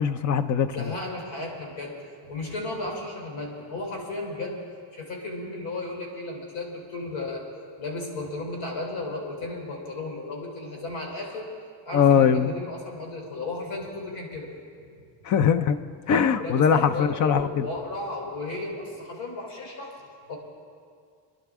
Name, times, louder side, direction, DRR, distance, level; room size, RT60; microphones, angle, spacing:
voice 1, 0.0-0.8 11.9-12.5 15.2-15.8 16.1-17.7, left 7 dB, 40° left, 12 dB, 0.4 m, -21 dB
voice 2, 0.7-2.0 2.3-4.6 4.9-7.4 7.8-11.5 11.8-14.5 16.4-20.0 20.3-20.4, left 2 dB, 65° left, 0 dB, 3.4 m, -34 dB
25.5 x 11.0 x 3.6 m, 2.2 s
cardioid pair, 165°, 49 cm